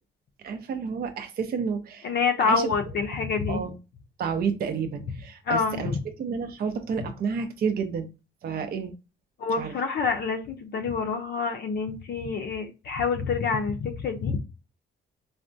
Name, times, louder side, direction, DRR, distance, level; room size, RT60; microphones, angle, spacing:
voice 1, 0.4-2.1 2.4-2.7 3.5-3.8 4.2-8.1 8.4-8.9 9.6-9.7, right 6 dB, 50° right, 7 dB, 0.5 m, -30 dB
voice 2, 2.0-3.6 5.5-5.9 9.4-14.4, left 5 dB, 55° left, 4 dB, 0.5 m, -27 dB
3.4 x 2.1 x 2.6 m, 0.29 s
cardioid pair, 90°, 20 cm